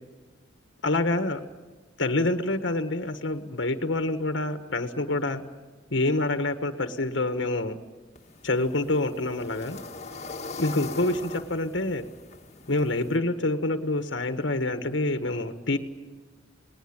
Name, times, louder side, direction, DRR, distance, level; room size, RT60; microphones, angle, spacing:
voice 1, 0.8-1.4 2.0-5.4 5.9-7.8 8.4-9.8 10.6-12.0 12.7-15.8, left 2 dB, 65° left, 8 dB, 1.6 m, -27 dB
sound 1, 8.2-13.2, left 3 dB, 35° left, 2.0 m, -41 dB
29.0 x 20.0 x 8.9 m, 1.4 s
head